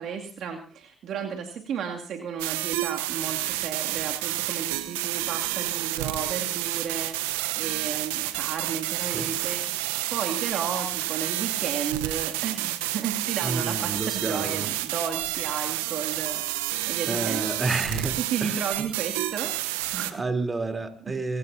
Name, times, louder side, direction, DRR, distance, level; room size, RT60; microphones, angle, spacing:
voice 1, 0.0-9.6 10.1-16.4 16.9-17.5 18.2-20.2, right 7 dB, 65° right, 2 dB, 2.5 m, -33 dB
sound 1, 2.4-20.1, right 16 dB, 90° right, 0.9 m, -30 dB
voice 2, 13.4-14.7 17.1-18.5 20.1-21.4, right 3 dB, 30° right, 6 dB, 3.5 m, -30 dB
27.5 x 17.0 x 2.8 m, 0.35 s
hypercardioid pair, 60°, 0 cm